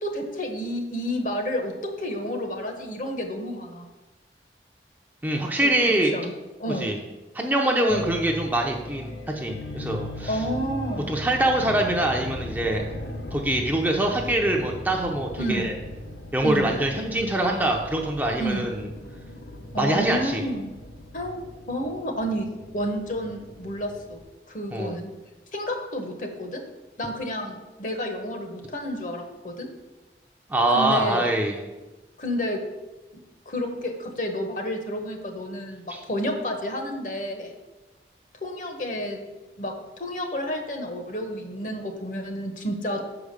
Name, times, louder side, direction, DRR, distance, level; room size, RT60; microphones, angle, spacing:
voice 1, 0.0-3.9 5.6-6.3 6.6-7.0 7.8-8.1 10.2-11.2 15.4-15.7 16.4-16.8 18.4-18.6 19.7-20.7 21.1-21.4 21.7-22.5 22.7-24.2 24.5-25.1 25.5-26.6 27.0-29.7 30.7-31.3 32.2-32.6 33.5-37.5 38.4-39.2 39.6-43.0, equal, 45° left, 4 dB, 1.0 m, -30 dB
voice 2, 5.2-6.1 6.8-7.0 7.3-10.4 11.1-12.9 13.3-15.7 16.3-18.9 19.8-20.5 24.7-24.9 30.5-31.6 35.9-36.0, right 1 dB, 10° right, 0 dB, 0.6 m, -24 dB
sound 1, 7.9-24.2, left 1 dB, 80° left, 0.9 m, -38 dB
6.2 x 4.9 x 6.6 m, 1.1 s
head